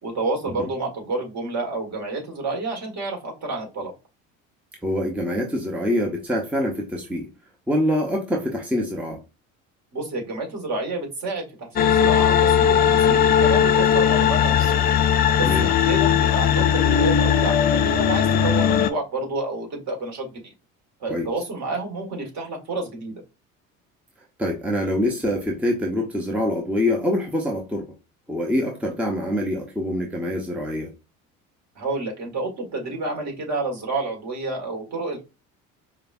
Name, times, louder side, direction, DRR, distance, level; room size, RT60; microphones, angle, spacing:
voice 1, 0.0-3.9 9.9-14.9 15.4-20.5 21.0-23.2 31.8-35.2, right 2 dB, 40° right, 1.9 m, -29 dB
voice 2, 4.8-7.3 7.7-9.2 15.4-15.7 21.1-21.3 24.4-27.9 28.3-30.9, left 1 dB, 5° right, 0.7 m, -25 dB
sound 1, 11.8-18.9, left 8 dB, 25° left, 0.3 m, -18 dB
4.9 x 2.3 x 2.4 m
figure-of-eight pair, 60°, 41 cm